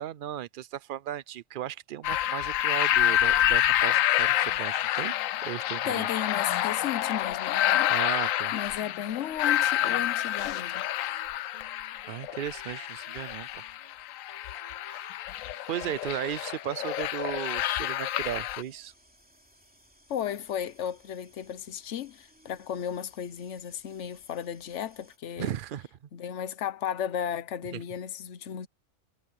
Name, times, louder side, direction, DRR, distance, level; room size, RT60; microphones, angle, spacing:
voice 1, 0.0-5.2 5.4-6.1 7.9-8.5 12.1-13.6 14.8-15.1 15.7-18.9 25.4-25.9 27.7-27.8, right 11 dB, 60° right, 0.5 m, -36 dB
sound 1, 2.0-18.6, left 12 dB, 90° left, 1.0 m, -28 dB
sound 2, 2.0-17.4, right 2 dB, 25° right, 2.5 m, -57 dB
voice 2, 5.8-7.9 8.5-10.9 20.1-25.5 26.1-28.7, left 9 dB, 65° left, 1.1 m, -34 dB
sound 3, 17.6-25.2, equal, 5° right, 2.9 m, -61 dB
omnidirectional pair, 1.3 m